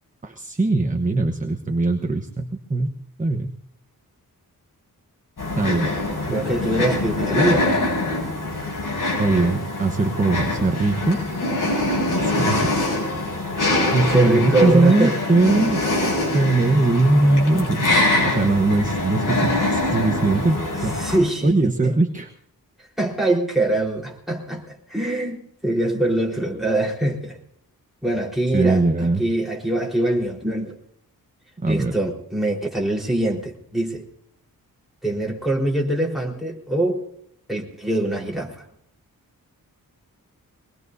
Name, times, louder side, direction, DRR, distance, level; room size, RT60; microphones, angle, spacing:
voice 1, 0.2-2.9 3.2-3.5 5.6-5.9 9.2-11.2 11.6-12.0 12.2-12.8 13.9-15.8 16.3-17.9 18.2-21.0 21.4-22.3 28.5-29.2 31.6-32.0, right 2 dB, 20° right, 4 dB, 1.2 m, -20 dB
sound 1, 5.4-21.2, left 2 dB, 65° left, 7.8 m, -24 dB
voice 2, 6.3-7.8 13.6-15.2 21.0-22.0 22.8-27.4 28.0-30.8 31.7-34.0 35.0-37.0 37.5-38.6, right 1 dB, ahead, -2 dB, 4.4 m, -23 dB
24.0 x 20.0 x 2.7 m, 0.72 s
wide cardioid pair, 100°, 35 cm